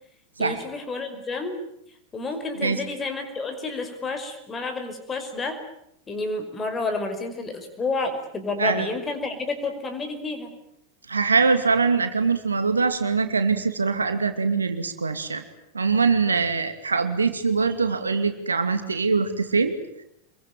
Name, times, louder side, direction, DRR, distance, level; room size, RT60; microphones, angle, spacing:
voice 1, 0.4-1.6 2.1-5.6 6.1-10.5, left 3 dB, 20° left, 7 dB, 5.4 m, -30 dB
voice 2, 11.1-15.4 15.7-19.8, right 4 dB, 75° right, 8 dB, 2.5 m, -23 dB
27.0 x 22.5 x 9.2 m, 0.77 s
figure-of-eight pair, 90°, 0 cm